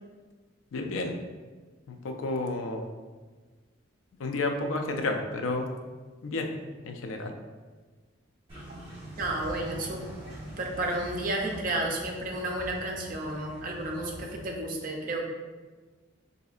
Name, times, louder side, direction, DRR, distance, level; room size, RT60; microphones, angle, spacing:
voice 1, 0.7-1.2 1.9-2.9 4.2-5.7 6.2-6.5 6.8-7.3, left 2 dB, 80° left, 4 dB, 0.4 m, -31 dB
sound 1, 8.5-14.4, right 1 dB, 30° right, 1.0 m, -43 dB
voice 2, 9.2-10.0 10.6-15.2, right 1 dB, 45° right, 0 dB, 0.5 m, -32 dB
4.1 x 2.6 x 2.4 m, 1.3 s
head